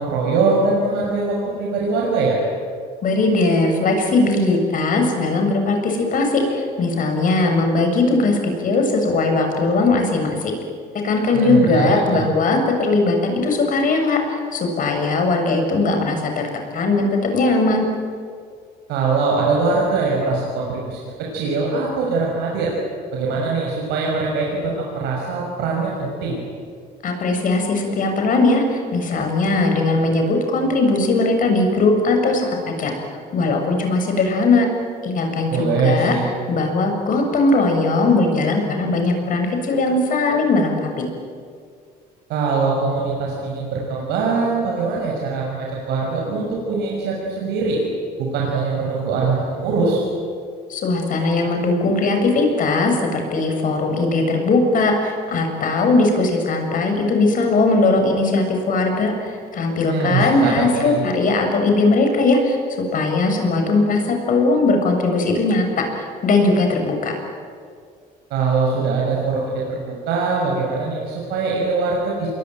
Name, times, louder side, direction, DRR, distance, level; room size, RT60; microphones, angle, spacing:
voice 1, 0.0-2.4 11.3-12.2 18.9-22.7 23.1-26.4 35.5-36.3 42.3-47.8 48.2-50.0 59.8-61.0 68.3-72.3, right 4 dB, 90° right, -2 dB, 6.1 m, -22 dB
voice 2, 3.0-10.6 11.0-14.2 14.5-16.5 16.7-17.9 27.0-33.0 33.3-34.7 35.0-36.2 36.5-41.0 50.7-62.6 62.9-67.1, left 3 dB, 55° left, 4 dB, 6.9 m, -19 dB
27.5 x 22.5 x 9.2 m, 2.1 s
cardioid pair, 110°, 17 cm